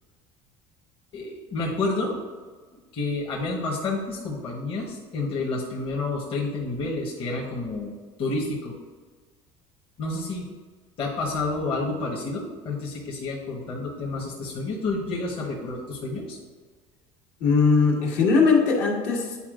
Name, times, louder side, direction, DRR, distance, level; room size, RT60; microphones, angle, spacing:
voice 1, 1.1-2.1 2.7-7.9 8.2-8.7 10.0-10.5 11.0-16.4, left 3 dB, 45° left, -3 dB, 1.2 m, -29 dB
voice 2, 17.4-19.4, left 4 dB, 75° left, -3 dB, 2.0 m, -20 dB
9.8 x 4.6 x 2.5 m, 1.5 s
cardioid pair, 125°, 13 cm